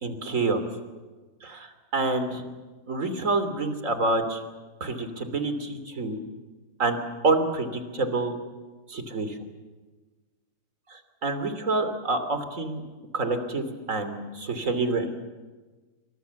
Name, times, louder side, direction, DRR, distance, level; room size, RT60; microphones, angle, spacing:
voice 1, 0.0-0.6 1.4-2.4 2.9-4.4 4.8-6.2 6.8-7.0 7.2-8.3 8.9-9.4 10.9-12.8 13.1-15.1, right 3 dB, 45° right, 9 dB, 3.4 m, -27 dB
29.5 x 24.5 x 7.1 m, 1.3 s
omnidirectional pair, 2.0 m